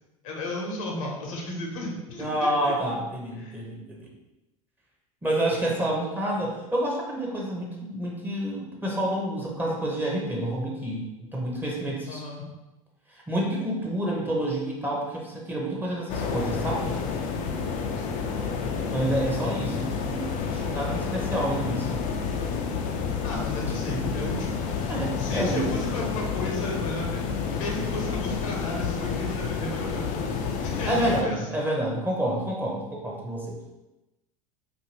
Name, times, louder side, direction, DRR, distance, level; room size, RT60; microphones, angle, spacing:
voice 1, 0.2-2.7 3.3-3.6 12.1-12.4 17.6-18.2 23.2-30.2 30.6-31.4, left 2 dB, 65° left, -1 dB, 0.8 m, -34 dB
voice 2, 2.2-4.1 5.2-11.0 11.3-12.2 13.3-17.0 18.8-22.0 23.9-24.1 24.9-25.6 30.9-33.6, right 1 dB, 10° right, -3 dB, 0.8 m, -28 dB
sound 1, 16.1-31.2, left 5 dB, 50° left, 0.4 m, -29 dB
2.6 x 2.6 x 3.0 m, 1.0 s
figure-of-eight pair, 75°, 18 cm